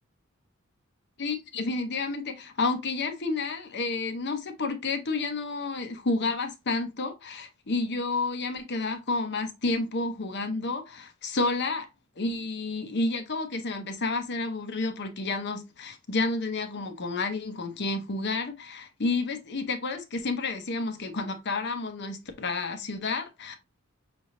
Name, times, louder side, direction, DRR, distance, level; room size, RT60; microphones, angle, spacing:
voice 1, 1.2-11.9 12.2-23.6, left 3 dB, 55° left, 0.8 m, -30 dB
6.1 x 3.2 x 2.6 m
head